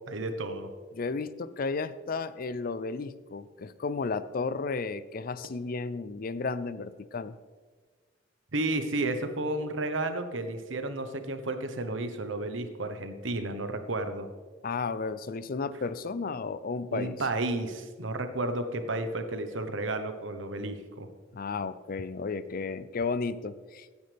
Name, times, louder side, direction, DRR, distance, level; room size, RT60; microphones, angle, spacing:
voice 1, 0.1-0.7 8.5-14.3 16.9-21.1, right 2 dB, 90° right, 8 dB, 1.1 m, -32 dB
voice 2, 0.9-7.4 14.6-17.2 21.3-24.0, left 4 dB, 50° left, 15 dB, 0.5 m, -33 dB
16.0 x 9.6 x 3.4 m, 1.5 s
head